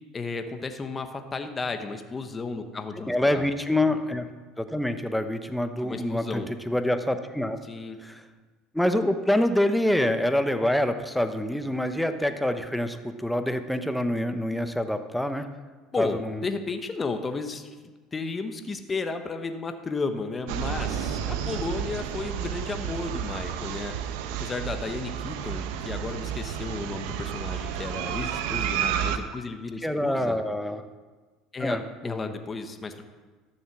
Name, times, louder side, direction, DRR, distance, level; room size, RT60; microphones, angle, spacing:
voice 1, 0.1-3.5 5.8-6.5 7.6-8.0 15.9-17.7 18.1-30.4 31.5-31.8 32.0-33.0, left 4 dB, 25° left, 7 dB, 1.1 m, -33 dB
voice 2, 3.1-4.3 4.6-7.6 8.0-8.2 8.7-15.5 16.0-16.4 29.8-30.8 31.6-32.3, left 1 dB, 5° left, 8 dB, 0.9 m, -26 dB
sound 1, 20.5-29.2, right 9 dB, 80° right, 0.9 m, -31 dB
13.0 x 7.2 x 6.1 m, 1.4 s
supercardioid pair, 110°, 0 cm